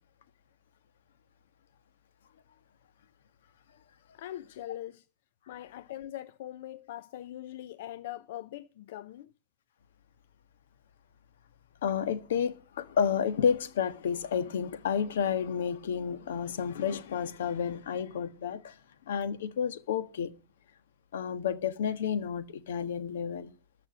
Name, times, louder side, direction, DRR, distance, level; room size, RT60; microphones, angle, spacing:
voice 1, 4.1-5.1 5.5-9.3, left 13 dB, 65° left, 0.6 m, -42 dB
voice 2, 11.8-18.7 19.1-20.3 21.1-23.5, left 7 dB, 85° left, 1.4 m, -31 dB
13.5 x 6.0 x 8.2 m
supercardioid pair, 145°, 0 cm